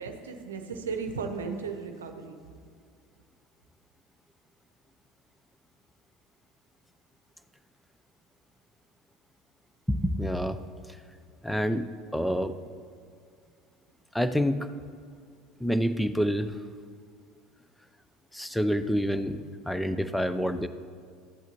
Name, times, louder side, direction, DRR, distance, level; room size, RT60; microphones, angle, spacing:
voice 1, 0.0-2.4, right 5 dB, 90° right, 5 dB, 0.7 m, -35 dB
voice 2, 9.9-10.6 11.4-12.5 14.1-14.7 15.6-16.6 18.3-20.7, equal, 5° left, 11 dB, 0.5 m, -27 dB
13.5 x 8.1 x 3.0 m, 2.2 s
hypercardioid pair, 80°, 0 cm